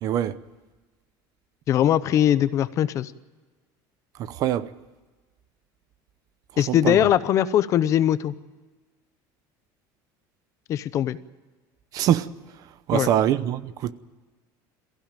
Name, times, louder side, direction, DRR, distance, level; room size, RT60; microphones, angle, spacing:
voice 1, 0.0-0.4 4.2-4.7 6.7-7.0 11.9-12.3 12.9-13.9, right 11 dB, 40° right, 0.8 m, -23 dB
voice 2, 1.7-3.1 6.6-8.3 10.7-11.2 12.9-13.1, left 11 dB, 35° left, 0.7 m, -21 dB
22.0 x 15.5 x 8.9 m
cardioid pair, 175°, 9 cm